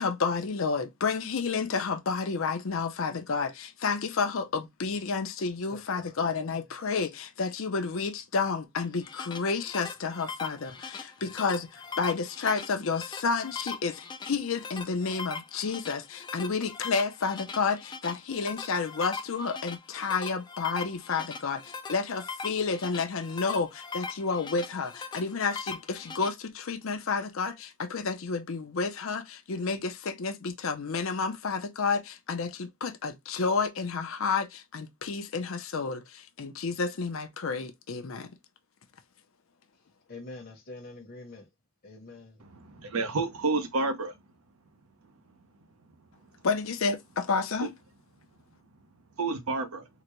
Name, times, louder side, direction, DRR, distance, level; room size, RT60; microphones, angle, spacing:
voice 1, 0.0-38.3 46.4-47.7, left 4 dB, 65° left, 0.6 m, -30 dB
voice 2, 5.7-6.2 40.1-41.5 41.8-42.4, left 2 dB, 45° left, 0.9 m, -45 dB
sound 1, 8.8-26.3, left 4 dB, 20° left, 0.3 m, -41 dB
voice 3, 42.4-44.1 47.6-47.7 49.2-49.9, right 3 dB, 80° right, 0.8 m, -30 dB
3.8 x 2.2 x 2.9 m
head